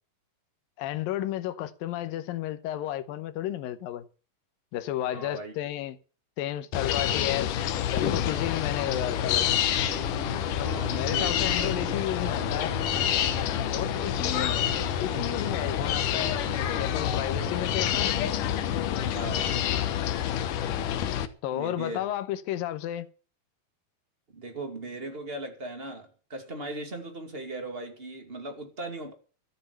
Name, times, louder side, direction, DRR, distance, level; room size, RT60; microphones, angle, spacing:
voice 1, 0.8-4.1 4.7-6.0 6.4-9.5 10.6-12.7 13.7-14.6 15.0-16.4 16.8-18.1 21.4-23.1, left 13 dB, 90° left, 2.7 m, -32 dB
voice 2, 5.0-5.5 7.1-7.2 10.5-11.7 14.1-14.5 19.1-19.5 21.5-22.1 24.3-29.1, right 2 dB, 20° right, 2.3 m, -38 dB
sound 1, 6.7-21.3, left 10 dB, 75° left, 2.5 m, -28 dB
sound 2, 7.8-18.9, right 9 dB, 75° right, 2.8 m, -44 dB
13.5 x 7.8 x 8.2 m
omnidirectional pair, 4.0 m